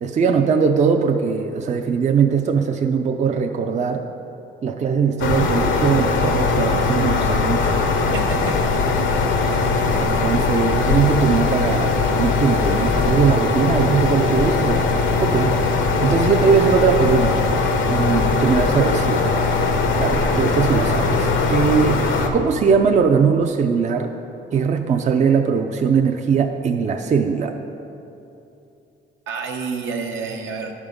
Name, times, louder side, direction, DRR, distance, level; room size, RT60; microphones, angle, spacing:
voice 1, 0.0-4.0 4.6-7.7 10.0-15.7 16.0-19.7 20.0-22.0 22.3-24.1 24.5-27.5, right 6 dB, 35° right, 4 dB, 0.4 m, -20 dB
sound 1, 5.2-22.3, left 4 dB, 75° left, 0.8 m, -20 dB
voice 2, 8.1-8.7 29.3-30.7, right 5 dB, 80° right, 1 dB, 0.9 m, -28 dB
10.5 x 3.7 x 5.1 m, 2.8 s
cardioid pair, 90°, 20 cm